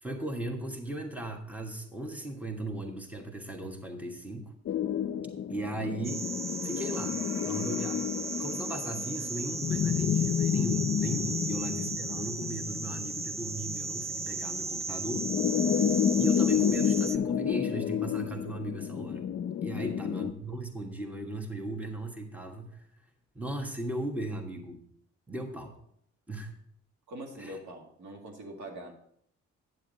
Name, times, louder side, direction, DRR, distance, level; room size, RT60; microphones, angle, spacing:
voice 1, 0.0-4.5 5.5-6.3 6.6-8.1 8.4-15.3 15.8-15.9 16.2-19.3 19.6-22.9 23.3-24.8 25.3-25.7 26.3-26.5 27.4-27.6, right 1 dB, 5° right, 3 dB, 1.4 m, -37 dB
sound 1, 4.7-20.3, left 8 dB, 45° left, 0.5 m, -30 dB
sound 2, 6.0-17.2, right 3 dB, 20° right, 0.4 m, -36 dB
voice 2, 27.1-28.9, right 1 dB, 70° right, 1 dB, 2.1 m, -43 dB
9.4 x 7.3 x 3.9 m, 0.69 s
cardioid pair, 90°, 30 cm